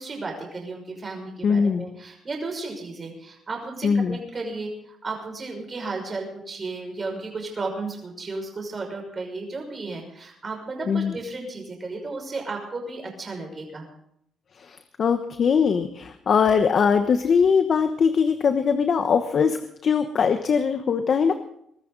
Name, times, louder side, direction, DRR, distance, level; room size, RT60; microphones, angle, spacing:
voice 1, 0.0-13.9, right 3 dB, 35° right, 2 dB, 6.0 m, -34 dB
voice 2, 1.4-1.9 3.8-4.2 10.9-11.1 14.6-21.3, left 6 dB, 55° left, 8 dB, 1.1 m, -21 dB
23.5 x 13.5 x 4.0 m, 0.72 s
cardioid pair, 90°, 0 cm